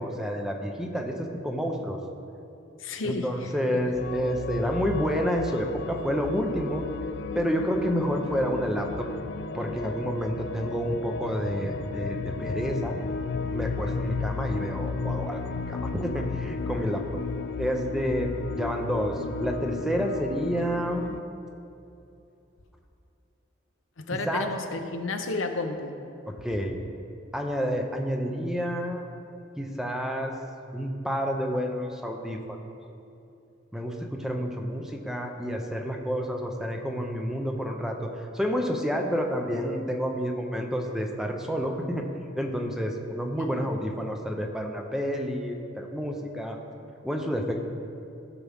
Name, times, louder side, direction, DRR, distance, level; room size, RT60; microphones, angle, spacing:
voice 1, 0.0-2.0 3.0-6.8 7.3-9.1 9.5-13.0 13.5-15.4 15.7-17.1 17.6-18.3 18.6-21.1 24.3-24.5 26.4-26.8 27.3-29.0 29.6-30.3 30.7-32.6 33.7-42.1 42.4-46.6 47.0-47.6, equal, 5° right, 2 dB, 0.7 m, -29 dB
voice 2, 2.8-3.8 24.0-26.0 43.4-43.7, left 3 dB, 85° left, 5 dB, 0.8 m, -32 dB
sound 1, 4.0-21.2, left 4 dB, 60° left, 0.4 m, -34 dB
15.5 x 6.0 x 3.6 m, 2.7 s
head